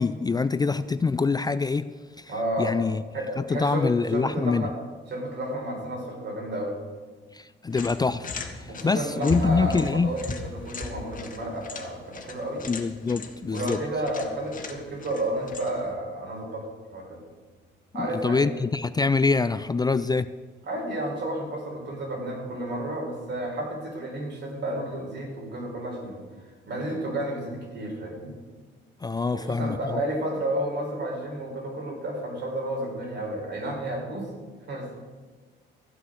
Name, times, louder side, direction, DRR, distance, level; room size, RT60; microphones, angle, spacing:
voice 1, 0.0-1.9 2.2-2.3 2.6-3.0 3.4-4.7 7.3-10.1 12.7-13.8 18.0-20.3 29.0-30.0, left 4 dB, 20° left, 14 dB, 0.4 m, -25 dB
voice 2, 2.3-2.8 3.1-4.7 5.1-6.7 8.7-12.6 13.5-16.7 16.9-17.2 17.9-18.5 20.7-26.2 26.7-28.3 29.3-34.3 34.7-34.9, right 1 dB, 60° right, 0 dB, 4.3 m, -31 dB
sound 1, 7.7-15.9, left 4 dB, 40° left, 1.6 m, -40 dB
sound 2, 9.3-20.0 20.3-21.0 21.2-21.5 21.8-22.2 22.5-22.6 23.1-23.6 23.9-24.0 24.5-24.6, right 2 dB, 80° right, 2.6 m, -42 dB
14.0 x 7.9 x 6.3 m, 1.4 s
cardioid pair, 90°, 20 cm